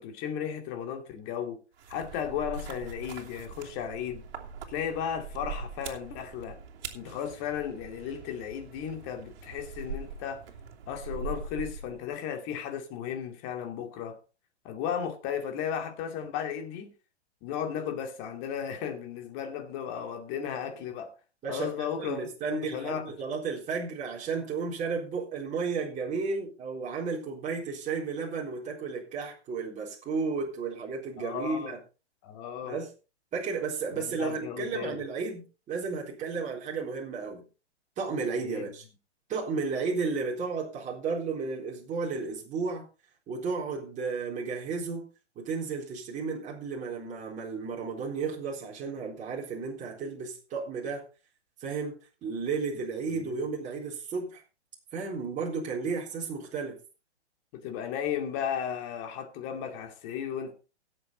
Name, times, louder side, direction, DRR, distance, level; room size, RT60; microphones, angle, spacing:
voice 1, 0.0-1.6 1.9-4.2 4.7-6.6 6.9-10.4 10.9-14.2 14.6-16.9 17.4-21.1 21.5-23.0 31.2-31.7 32.2-32.8 33.9-35.0 38.4-38.6 53.1-53.3 57.5-60.5, left 8 dB, 35° left, 2.6 m, -35 dB
sound 1, 1.8-12.1, right 5 dB, 55° right, 3.0 m, -42 dB
voice 2, 22.0-31.8 32.6-32.9 33.3-37.4 38.0-38.9 39.3-42.8 43.3-45.0 45.4-51.0 51.6-54.4 54.9-56.8, right 4 dB, 20° right, 3.9 m, -33 dB
17.0 x 7.9 x 4.0 m
figure-of-eight pair, 120°, 34 cm